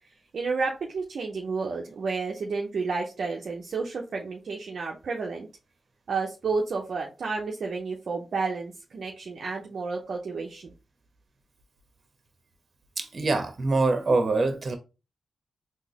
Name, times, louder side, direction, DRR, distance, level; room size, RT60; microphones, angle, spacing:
voice 1, 0.3-5.5 6.1-10.7, right 4 dB, 70° right, 0.6 m, -31 dB
voice 2, 13.0-14.8, right 3 dB, 50° right, 1.0 m, -24 dB
3.8 x 2.9 x 2.9 m
supercardioid pair, 40°, 0 cm